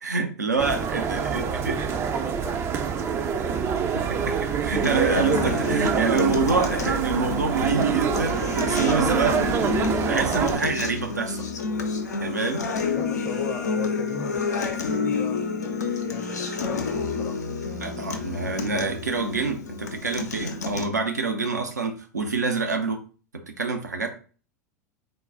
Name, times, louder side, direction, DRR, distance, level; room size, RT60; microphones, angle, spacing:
voice 1, 0.0-1.8 3.9-9.4 10.1-11.5 12.2-12.7 17.8-23.0 23.6-24.1, right 4 dB, 80° right, 0.7 m, -26 dB
sound 1, 0.6-10.6, right 7 dB, 30° right, 0.4 m, -26 dB
voice 2, 1.2-3.8 13.0-17.4, left 5 dB, 30° left, 0.7 m, -40 dB
Acoustic guitar, 4.8-20.8, left 4 dB, 75° left, 0.6 m, -29 dB
3.8 x 2.2 x 3.8 m
figure-of-eight pair, 90°, 9 cm